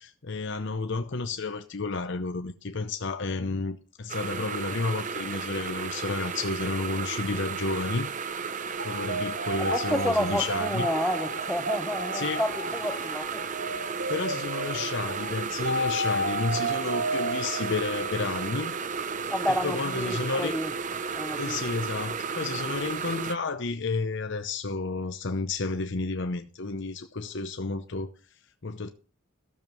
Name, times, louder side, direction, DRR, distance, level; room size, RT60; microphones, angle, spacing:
voice 1, 0.0-8.1 8.8-10.9 12.1-12.4 14.1-18.7 19.6-20.6 21.4-28.9, left 3 dB, 60° left, 0.8 m, -31 dB
sound 1, 4.1-23.4, right 6 dB, 40° right, 0.7 m, -34 dB
sound 2, 8.8-18.5, right 1 dB, 70° right, 4.4 m, -33 dB
voice 2, 9.6-13.5 19.3-20.7 21.1-21.6, equal, 5° left, 0.7 m, -30 dB
13.5 x 7.3 x 6.1 m
head